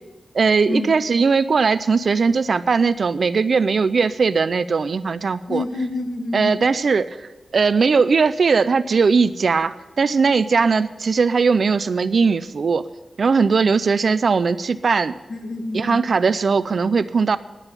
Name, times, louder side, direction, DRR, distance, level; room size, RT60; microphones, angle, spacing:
voice 1, 0.3-5.6 6.3-7.1 7.5-12.9 13.2-15.1 15.7-17.4, right 5 dB, 55° right, 14 dB, 0.5 m, -19 dB
voice 2, 5.5-6.6 15.3-16.1, left 2 dB, 45° left, 4 dB, 1.8 m, -27 dB
10.5 x 9.0 x 9.6 m, 1.1 s
wide cardioid pair, 145°, 0 cm